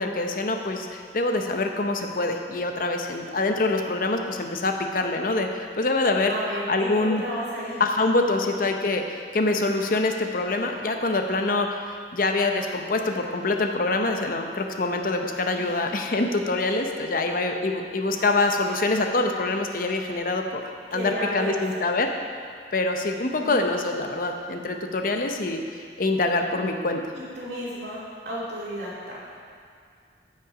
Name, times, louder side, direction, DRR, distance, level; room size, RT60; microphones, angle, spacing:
voice 1, 0.0-6.4 6.7-7.2 7.8-11.8 12.1-20.6 20.9-22.1 22.7-25.6 26.0-27.0, left 2 dB, 50° left, 4 dB, 0.8 m, -25 dB
voice 2, 6.3-7.8 8.2-8.6 15.5-15.7 17.1-17.4 20.9-21.6 23.3-23.8 27.1-29.3, equal, 65° right, -7 dB, 2.8 m, -33 dB
14.0 x 5.8 x 4.9 m, 2.2 s
head